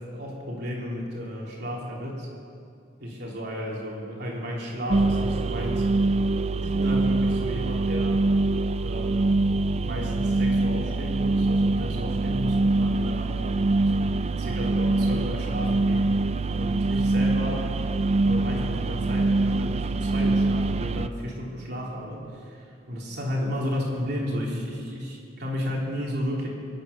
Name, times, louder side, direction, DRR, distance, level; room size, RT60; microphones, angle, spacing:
voice 1, 0.0-2.3 3.0-5.9 6.6-8.3 8.8-9.4 9.8-13.7 14.4-16.1 16.6-17.7 18.3-26.5, equal, 55° right, -3 dB, 3.4 m, -33 dB
sound 1, 4.9-21.1, right 2 dB, 30° right, 0.4 m, -24 dB
24.0 x 8.8 x 6.7 m, 2.5 s
head